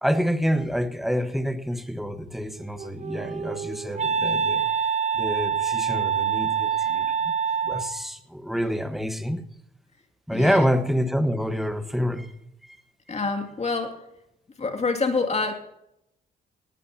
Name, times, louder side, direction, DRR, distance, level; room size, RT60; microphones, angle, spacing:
voice 1, 0.0-4.7 5.1-7.3 7.6-9.4 10.3-12.3, equal, ahead, 8 dB, 1.3 m, -27 dB
Wind instrument woodwind instrument, 2.6-8.1, right 7 dB, 35° right, 0.6 m, -26 dB
voice 2, 10.3-10.7 13.1-14.0 14.6-15.5, left 4 dB, 35° left, 5 dB, 2.4 m, -26 dB
19.0 x 17.0 x 2.8 m, 0.83 s
cardioid pair, 90°, 20 cm